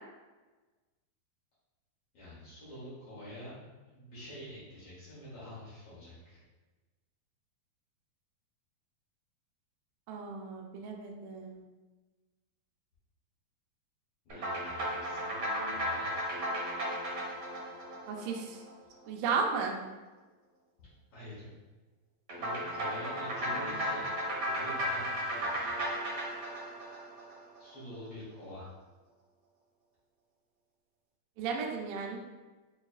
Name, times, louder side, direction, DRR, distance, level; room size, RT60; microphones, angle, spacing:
voice 1, 2.1-3.5 3.8-6.4 14.2-16.1 20.8-21.5 22.4-24.1 24.4-25.7 27.6-28.7, left 1 dB, 80° left, -9 dB, 1.3 m, -47 dB
voice 2, 10.1-11.6 18.1-18.6 19.1-19.8 31.4-32.2, right 5 dB, 80° right, 0 dB, 2.0 m, -34 dB
sound 1, 14.3-19.0 22.3-27.7, equal, 65° right, 1.2 m, -35 dB
5.6 x 2.7 x 2.3 m, 1.2 s
omnidirectional pair, 4.4 m